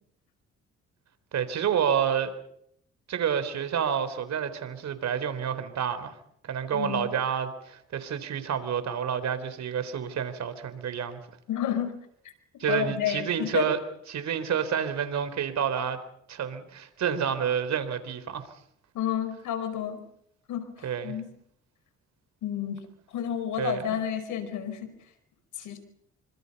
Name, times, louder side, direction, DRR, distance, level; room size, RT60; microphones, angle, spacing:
voice 1, 1.3-2.3 3.1-6.1 6.4-11.2 12.6-13.8 14.1-16.0 16.3-18.4 20.8-21.2 23.6-24.0, right 8 dB, 65° right, 11 dB, 4.0 m, -29 dB
voice 2, 6.7-7.1 11.5-11.9 12.7-13.7 18.9-20.0 20.5-21.2 22.4-22.8 23.1-24.9 25.6-25.8, left 9 dB, 80° left, 9 dB, 5.2 m, -30 dB
27.0 x 26.0 x 5.5 m, 0.71 s
cardioid pair, 90°, 30 cm